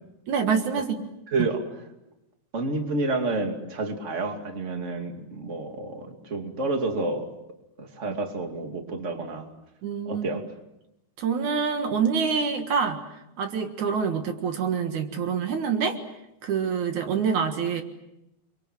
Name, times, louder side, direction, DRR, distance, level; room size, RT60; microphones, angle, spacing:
voice 1, 0.3-0.9 8.1-8.2 9.8-10.3 11.2-13.0 13.4-16.0 16.4-17.8, right 6 dB, 70° right, 6 dB, 3.1 m, -26 dB
voice 2, 1.3-1.7 2.5-7.3 7.8-9.5 10.1-10.4, right 3 dB, 25° right, 4 dB, 2.7 m, -29 dB
29.5 x 23.5 x 7.6 m, 0.85 s
omnidirectional pair, 3.5 m